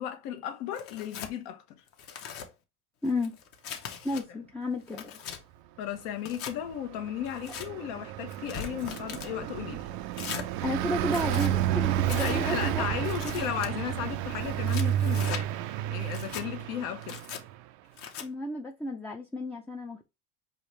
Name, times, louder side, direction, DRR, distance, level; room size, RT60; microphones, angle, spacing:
voice 1, 0.0-1.6 5.8-9.9 12.2-17.2, left 10 dB, 75° left, 1.1 m, -35 dB
Tearing, 0.7-1.3 1.9-2.5 3.0-4.2 4.7-5.4 6.2-6.5 7.2-7.7 8.3-9.3 10.1-10.5 11.0-11.5 12.1-12.4 13.0-13.7 14.4-15.4 16.0-16.5 17.0-17.4 18.0-18.3, left 8 dB, 45° left, 0.9 m, -40 dB
voice 2, 3.0-3.4 4.0-5.1 10.6-12.8 18.2-20.1, left 1 dB, 5° left, 0.4 m, -32 dB
Car passing by, 6.5-17.5, right 12 dB, 65° right, 0.5 m, -31 dB
4.9 x 2.5 x 3.1 m
supercardioid pair, 120°, 32 cm